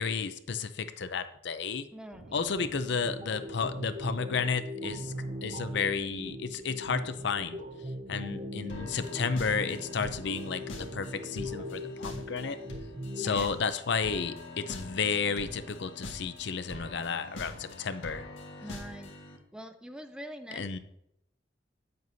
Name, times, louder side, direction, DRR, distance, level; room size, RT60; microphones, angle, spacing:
voice 1, 0.0-1.8 2.3-5.1 5.4-7.6 8.1-12.6 13.2-18.2 20.6-20.8, left 5 dB, 60° left, 11 dB, 0.6 m, -32 dB
voice 2, 1.9-2.4 13.2-13.5 18.6-19.1 19.5-20.8, equal, 5° right, 7 dB, 0.4 m, -44 dB
sound 1, 1.9-4.0 4.9-8.2, right 1 dB, 75° right, 1.4 m, -53 dB
sound 2, 2.6-13.6, equal, 30° right, 0.9 m, -39 dB
sound 3, 8.7-19.4, left 1 dB, 80° left, 1.6 m, -44 dB
9.2 x 7.8 x 2.7 m, 0.78 s
head